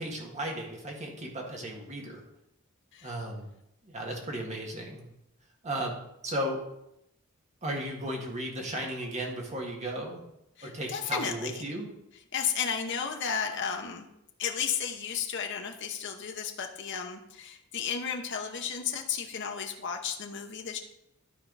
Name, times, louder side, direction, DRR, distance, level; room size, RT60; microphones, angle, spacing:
voice 1, 0.0-2.2 3.0-3.5 3.8-5.1 5.6-6.0 6.2-6.6 7.6-10.2 10.6-11.9, right 1 dB, 35° right, 0 dB, 1.8 m, -35 dB
voice 2, 10.6-11.6 12.3-14.1 14.4-20.8, left 7 dB, 55° left, 3 dB, 0.9 m, -33 dB
12.0 x 4.5 x 4.0 m, 0.82 s
head